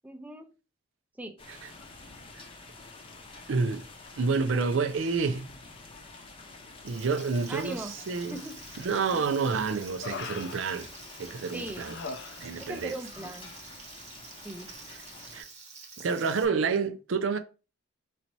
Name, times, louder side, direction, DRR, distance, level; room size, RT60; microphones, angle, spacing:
voice 1, 0.0-0.5 1.2-1.4 7.5-7.9 8.3-8.6 11.5-11.9 12.6-13.5 14.4-14.7, right 1 dB, 5° right, 0.4 m, -39 dB
sound 1, 1.4-15.4, left 3 dB, 25° left, 0.7 m, -49 dB
voice 2, 3.5-3.8 4.2-5.5 6.8-8.4 8.8-10.9 11.2-11.9 12.4-12.9 15.3-15.5 16.0-17.4, right 4 dB, 65° right, 0.5 m, -29 dB
Frying (food), 6.9-16.4, right 5 dB, 35° right, 1.0 m, -49 dB
Human voice, 8.2-8.8 9.2-11.3 11.7-12.8 13.1-13.4, left 5 dB, 60° left, 0.4 m, -42 dB
4.1 x 2.7 x 4.5 m
head